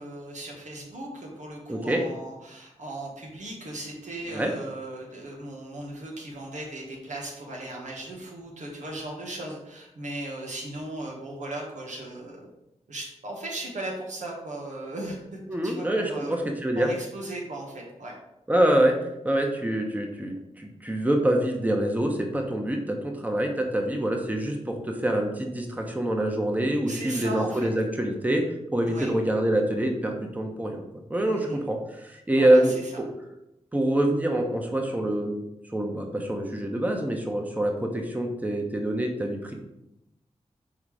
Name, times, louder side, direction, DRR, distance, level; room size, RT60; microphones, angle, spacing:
voice 1, 0.0-12.5 12.9-15.2 15.6-16.4 16.7-18.1 26.9-27.7 28.9-29.1 31.3-31.6 32.3-32.9, right 1 dB, 85° right, -1 dB, 1.6 m, -37 dB
voice 2, 1.7-2.0 4.3-4.5 15.5-16.9 18.5-18.9 19.2-28.4 28.7-33.1 33.7-35.4 35.7-39.5, right 1 dB, 15° right, 2 dB, 0.9 m, -25 dB
5.7 x 3.9 x 4.8 m, 0.87 s
wide cardioid pair, 80°, 12 cm